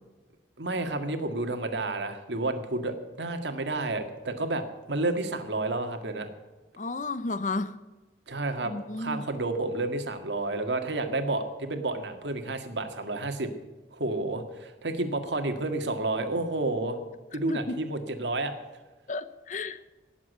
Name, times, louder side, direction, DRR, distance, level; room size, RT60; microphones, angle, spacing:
voice 1, 0.6-6.3 8.3-13.5 13.9-17.0 17.3-18.5, right 2 dB, 80° right, 7 dB, 1.8 m, -30 dB
voice 2, 6.8-7.8 8.6-9.2 17.5-17.8 19.1-19.9, left 3 dB, 45° left, 14 dB, 0.7 m, -32 dB
18.0 x 7.4 x 8.2 m, 1.2 s
head